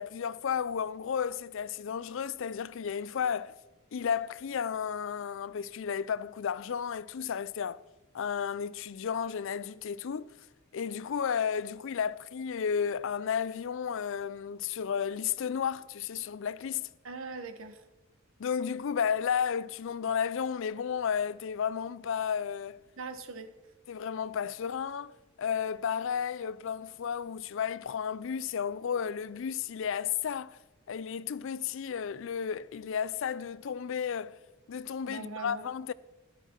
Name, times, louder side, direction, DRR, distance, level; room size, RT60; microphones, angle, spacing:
voice 1, 0.0-3.5 3.9-7.8 8.1-10.3 10.7-16.9 18.4-22.8 23.9-25.1 25.4-30.6 30.9-34.4 34.7-35.9, left 7 dB, 65° left, 0.4 m, -33 dB
voice 2, 17.0-17.8 23.0-23.5 35.0-35.7, right 4 dB, 70° right, 1.1 m, -41 dB
13.5 x 11.0 x 4.4 m
head